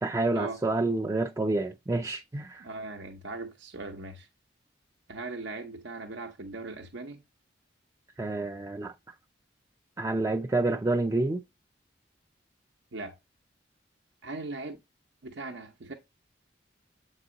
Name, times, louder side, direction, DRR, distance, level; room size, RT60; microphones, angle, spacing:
voice 1, 0.0-2.6 8.2-8.9 10.0-11.4, right 2 dB, 15° right, 0.4 m, -28 dB
voice 2, 2.6-4.3 5.1-7.2 12.9-13.2 14.2-14.8 15.2-15.9, right 3 dB, 70° right, 0.8 m, -39 dB
7.8 x 4.0 x 3.9 m
head